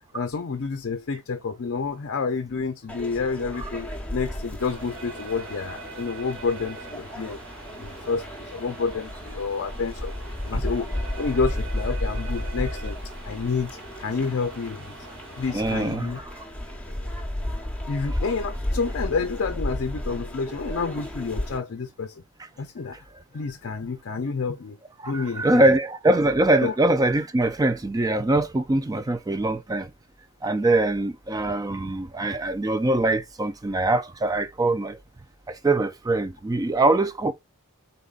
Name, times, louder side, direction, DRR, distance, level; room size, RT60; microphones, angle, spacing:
voice 1, 0.1-7.4 7.8-10.1 10.4-13.0 13.2-13.7 14.0-14.9 15.4-16.2 17.9-22.2 22.6-23.0 23.3-24.8 25.0-25.6 26.6-26.7, left 4 dB, 55° left, 0.5 m, -29 dB
sound 1, 2.9-21.6, left 1 dB, 5° left, 1.0 m, -33 dB
sound 2, 4.6-16.0, right 3 dB, 60° right, 1.4 m, -44 dB
voice 2, 15.5-16.5 18.1-18.2 22.4-22.5 22.9-23.0 25.0-29.9 30.4-35.0 35.5-37.3, right 2 dB, 15° right, 0.3 m, -23 dB
5.2 x 4.0 x 2.4 m
head